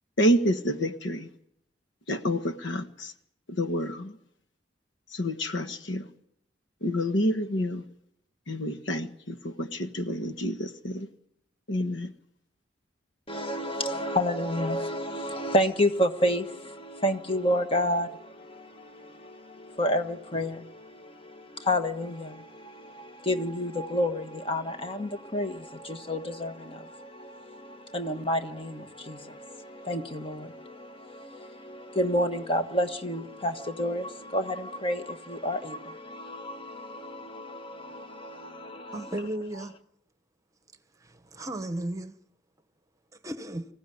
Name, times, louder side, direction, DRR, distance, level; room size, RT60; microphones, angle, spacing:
voice 1, 0.2-1.3 2.1-3.1 3.5-4.2 5.1-6.1 6.8-7.8 8.5-11.1 11.7-12.1, equal, 75° left, 1.5 m, -28 dB
voice 2, 13.3-39.2, equal, 30° left, 1.4 m, -30 dB
voice 3, 38.9-39.7 41.0-42.1 43.2-43.7, right 1 dB, 15° right, 1.1 m, -34 dB
25.0 x 15.5 x 9.4 m
head